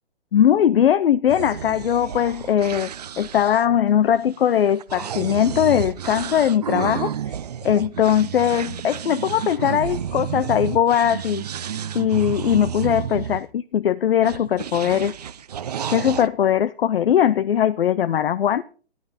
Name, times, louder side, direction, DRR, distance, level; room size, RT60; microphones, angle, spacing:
voice 1, 0.3-7.1 7.6-11.4 11.9-15.1 15.9-18.6, left 9 dB, 60° left, 0.6 m, -20 dB
sound 1, 1.3-13.4 14.2-16.3, right 9 dB, 40° right, 0.5 m, -31 dB
14.5 x 11.0 x 4.1 m
hypercardioid pair, 165°, 33 cm